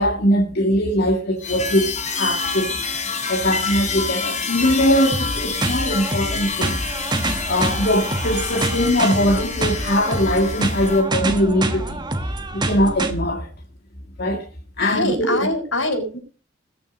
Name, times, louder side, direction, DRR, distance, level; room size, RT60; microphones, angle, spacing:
voice 1, 0.0-2.8 3.3-6.8 7.5-12.0 12.5-13.5 14.2-14.5 14.8-15.5, equal, 55° left, 2.0 m, -21 dB
sound 1, 1.4-11.0, left 5 dB, 40° left, 3.3 m, -28 dB
sound 2, 5.1-13.1, right 2 dB, 25° right, 1.3 m, -26 dB
voice 2, 14.8-16.2, left 1 dB, 85° left, 5.6 m, -23 dB
21.0 x 7.0 x 5.2 m
head